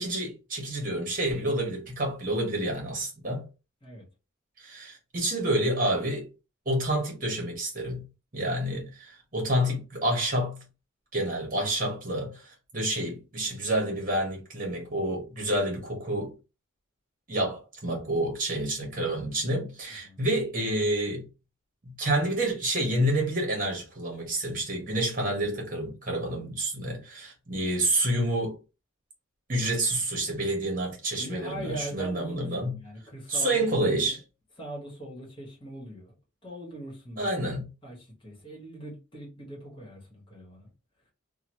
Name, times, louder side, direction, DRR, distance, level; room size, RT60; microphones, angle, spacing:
voice 1, 0.0-3.4 4.6-6.3 6.6-8.0 8.3-10.6 11.1-16.3 17.3-21.2 21.8-28.6 29.5-32.7 33.3-34.2 37.2-37.6, right 1 dB, 40° right, 1.2 m, -28 dB
voice 2, 31.1-34.2 34.6-36.1 36.4-37.3 37.8-40.7, right 1 dB, 25° left, 1.3 m, -41 dB
2.9 x 2.3 x 3.0 m
head